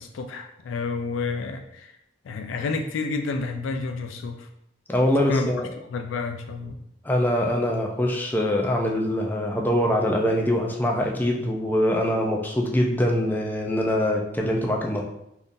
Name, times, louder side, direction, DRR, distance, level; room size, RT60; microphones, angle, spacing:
voice 1, 0.0-2.0 2.2-4.5 5.1-5.5 5.8-6.8, left 4 dB, 80° left, 5 dB, 0.3 m, -30 dB
voice 2, 4.9-5.7 7.0-15.0, left 1 dB, 10° left, 0 dB, 0.4 m, -23 dB
3.6 x 2.6 x 2.5 m, 0.82 s
head